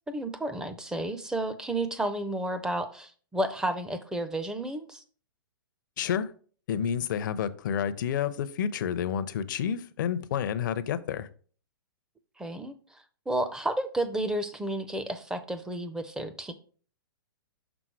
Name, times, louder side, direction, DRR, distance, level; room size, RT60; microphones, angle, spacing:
voice 1, 0.1-5.0 12.4-16.5, right 1 dB, 5° right, 0.5 m, -32 dB
voice 2, 6.0-6.3 6.7-11.3, left 8 dB, 55° left, 0.6 m, -29 dB
6.1 x 3.7 x 4.6 m
hypercardioid pair, 130°, 12 cm